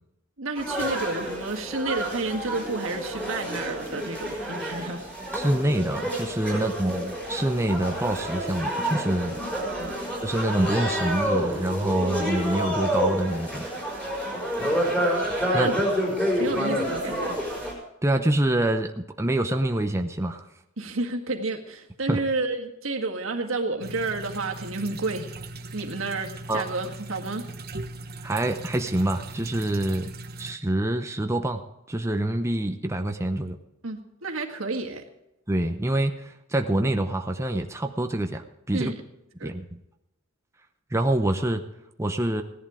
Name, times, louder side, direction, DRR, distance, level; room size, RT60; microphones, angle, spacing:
voice 1, 0.4-5.0 6.5-6.7 9.5-10.1 15.5-15.7 16.4-17.3 20.8-25.3 25.7-27.4 33.8-35.0 38.7-39.0 39.4-39.5, right 3 dB, 70° right, 3 dB, 1.9 m, -30 dB
sound 1, 0.5-17.7, equal, 5° left, 4.4 m, -28 dB
voice 2, 5.3-9.4 10.2-13.7 15.5-15.7 18.0-20.5 22.1-22.2 26.5-26.7 28.2-30.1 30.4-31.6 31.9-33.6 35.5-38.9 39.4-39.8 40.9-41.6 42.0-42.4, right 1 dB, 15° right, 5 dB, 0.8 m, -26 dB
sound 2, 23.8-30.6, right 2 dB, 50° right, 1.1 m, -39 dB
17.0 x 11.0 x 5.0 m, 0.89 s
head